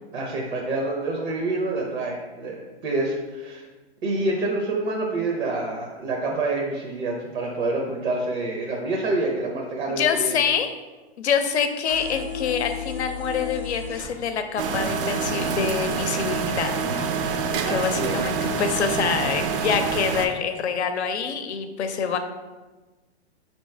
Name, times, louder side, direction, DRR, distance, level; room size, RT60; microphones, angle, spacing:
voice 1, 0.1-3.6 4.0-10.4 17.6-18.3, right 2 dB, 80° right, 0 dB, 0.8 m, -27 dB
voice 2, 9.9-10.8 11.2-17.1 17.5-22.2, left 6 dB, 85° left, 8 dB, 0.6 m, -26 dB
sound 1, 11.9-14.1, left 8 dB, 5° right, 0.5 m, -33 dB
sound 2, 14.6-20.3, right 5 dB, 55° right, 0.5 m, -26 dB
4.3 x 3.0 x 3.3 m, 1.2 s
hypercardioid pair, 140°, 32 cm